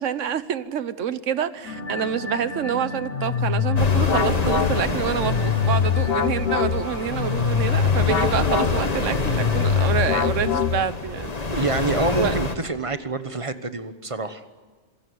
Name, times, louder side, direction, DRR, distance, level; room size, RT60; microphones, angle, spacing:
voice 1, 0.0-11.3 12.2-12.3, right 9 dB, 85° right, 15 dB, 1.3 m, -27 dB
sound 1, 1.6-10.0, left 2 dB, 75° left, 4.2 m, -35 dB
sound 2, 3.1-11.2, left 7 dB, 55° left, 1.3 m, -23 dB
sound 3, 3.8-12.6, left 3 dB, 30° left, 1.5 m, -27 dB
voice 2, 11.5-14.4, right 3 dB, 30° right, 11 dB, 1.1 m, -26 dB
27.0 x 16.0 x 9.5 m, 1.5 s
omnidirectional pair, 1.3 m